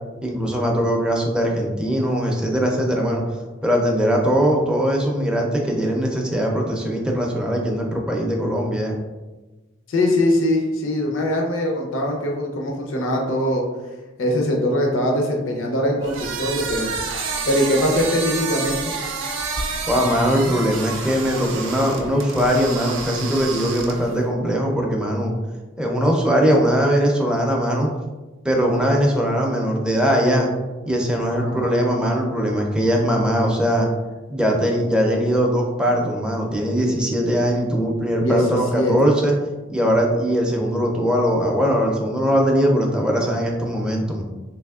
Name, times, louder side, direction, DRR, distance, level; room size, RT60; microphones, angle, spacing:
voice 1, 0.2-9.0 19.9-25.3 25.8-27.9 28.4-30.5 30.9-33.9 34.3-39.3 39.7-44.2, equal, 5° right, 0 dB, 0.4 m, -20 dB
voice 2, 9.9-13.6 14.2-16.9 17.4-18.9 31.4-31.6 38.2-38.4 38.7-38.9, left 1 dB, 80° left, 0 dB, 0.6 m, -22 dB
sound 1, 16.0-24.2, right 4 dB, 75° right, 0.5 m, -29 dB
3.3 x 3.0 x 2.3 m, 1.2 s
head